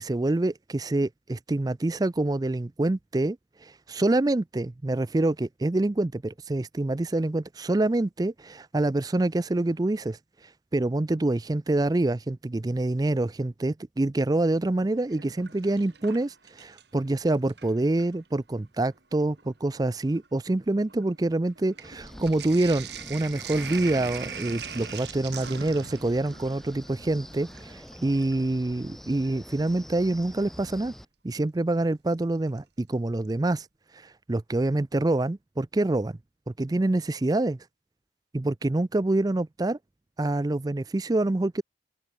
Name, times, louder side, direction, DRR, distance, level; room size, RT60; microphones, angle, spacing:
voice 1, 0.0-3.4 3.6-10.2 10.7-30.9 31.2-33.7 33.9-36.2 36.5-37.6 38.3-39.8 40.2-41.6, right 2 dB, 20° right, 0.4 m, -26 dB
Sink (filling or washing), 15.0-17.0 17.3-18.2 19.0-19.1 19.3-28.5 30.2-30.3 32.1-32.6 32.9-33.0 33.2-33.3, right 7 dB, 55° right, 4.2 m, -42 dB
Wind, 21.8-31.0, equal, ahead, 1.6 m, -45 dB
open air
head